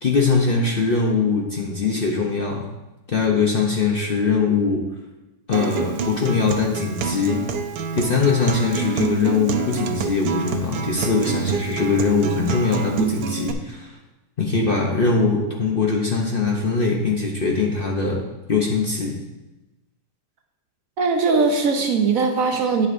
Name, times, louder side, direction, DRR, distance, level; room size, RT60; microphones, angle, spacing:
voice 1, 0.0-2.7 3.1-4.9 5.5-7.4 7.9-14.0 14.4-19.2, left 4 dB, 45° left, -1 dB, 0.7 m, -21 dB
Acoustic guitar, 5.5-13.5, right 6 dB, 80° right, 1.2 m, -27 dB
voice 2, 21.0-22.9, right 4 dB, 60° right, 4 dB, 1.1 m, -20 dB
9.1 x 7.8 x 2.6 m, 1.0 s
omnidirectional pair, 1.7 m